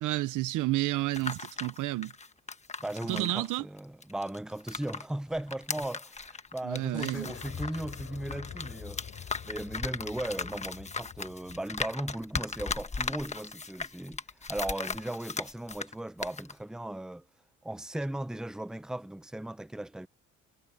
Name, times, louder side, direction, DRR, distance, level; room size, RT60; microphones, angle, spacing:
voice 1, 0.0-2.1 3.1-3.6 6.6-7.3, right 17 dB, 90° right, 0.9 m, -30 dB
sound 1, 0.9-5.0 5.3-15.9 16.2-16.5, left 4 dB, 25° left, 1.3 m, -38 dB
voice 2, 2.8-9.0 9.4-14.2 14.5-17.3 17.6-20.1, right 1 dB, ahead, 0.7 m, -37 dB
sound 2, 6.9-12.4, left 8 dB, 55° left, 3.7 m, -46 dB
cardioid pair, 90°, 30 cm